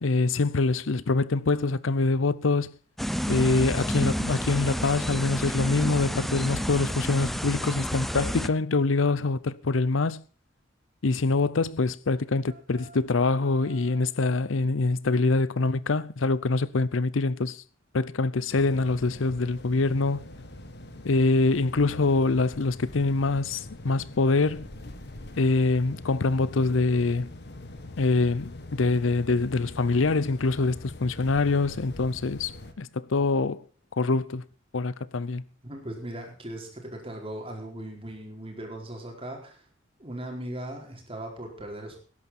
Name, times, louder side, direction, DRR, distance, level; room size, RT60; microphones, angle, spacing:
voice 1, 0.0-2.7 3.3-10.2 11.0-17.6 17.9-20.2 21.0-24.7 25.4-27.3 28.0-33.7 33.9-34.4 34.7-35.4, left 3 dB, 85° left, 0.7 m, -25 dB
sound 1, 3.0-8.5, equal, ahead, 0.7 m, -30 dB
sound 2, 12.0-14.2, right 3 dB, 55° right, 4.1 m, -52 dB
sound 3, 18.5-32.7, left 1 dB, 60° left, 1.7 m, -43 dB
voice 2, 35.6-39.6 40.0-42.0, right 1 dB, 30° right, 4.5 m, -38 dB
18.5 x 11.0 x 4.3 m
head